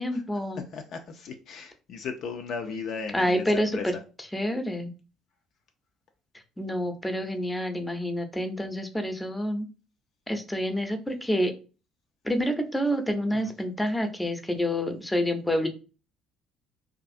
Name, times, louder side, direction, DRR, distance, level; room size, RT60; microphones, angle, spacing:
voice 1, 0.0-0.6 3.1-3.9 4.3-4.9 6.6-9.7 10.3-11.5 12.2-15.7, equal, 10° left, 0.6 m, -28 dB
voice 2, 0.7-3.8, left 5 dB, 55° left, 0.3 m, -36 dB
2.5 x 2.4 x 2.5 m
figure-of-eight pair, 55°, 0 cm